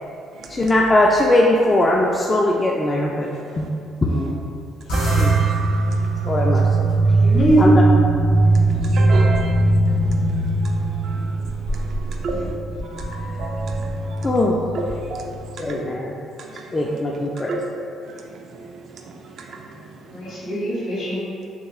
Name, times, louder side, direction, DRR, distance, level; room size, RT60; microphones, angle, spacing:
voice 1, 0.5-3.3 3.6-3.7 4.0-4.1 5.2-5.3 6.2-6.9 7.6-7.7 14.2-14.6 15.6-16.1 16.7-17.6, left 1 dB, 30° left, -2 dB, 0.3 m, -19 dB
voice 2, 3.9-4.3 7.2-7.9 8.7-8.8 12.3-12.4 20.1-21.3, right 1 dB, 65° left, -6 dB, 1.3 m, -21 dB
sound 1, 4.9-15.5, right 2 dB, 85° left, 1.3 m, -20 dB
voice 3, 4.9-5.6 8.3-8.5 8.9-9.6 10.3-10.4 10.6-10.8 11.0-11.3 11.8-12.4 12.9-14.3 14.7-15.3 16.8-17.6 20.3-20.4, right 3 dB, 60° right, 1 dB, 0.4 m, -31 dB
3.6 x 2.5 x 3.1 m, 2.4 s
supercardioid pair, 65°, 0 cm